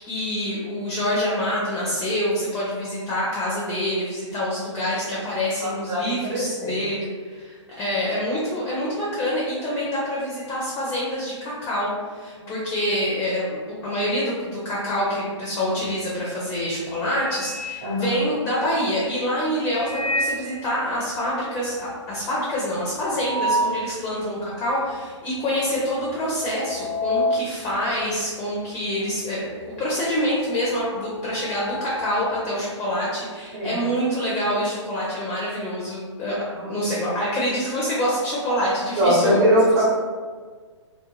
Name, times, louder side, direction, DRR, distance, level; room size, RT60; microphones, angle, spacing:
voice 1, 0.1-29.5 29.8-39.4, equal, 10° left, -6 dB, 0.4 m, -26 dB
voice 2, 5.6-6.8 12.4-12.6 17.8-18.1 24.1-24.3 33.5-33.7 36.5-36.9 39.0-39.8, equal, 40° right, -5 dB, 0.9 m, -22 dB
sound 1, 15.8-16.2 16.6-18.7 19.6-20.6 21.0-21.1 21.3-21.4 21.8-23.9 24.4-24.5 25.3-25.6 25.9-29.2 29.5-32.4, equal, 85° left, 0.8 m, -30 dB
2.4 x 2.1 x 3.1 m, 1.5 s
hypercardioid pair, 145°, 16 cm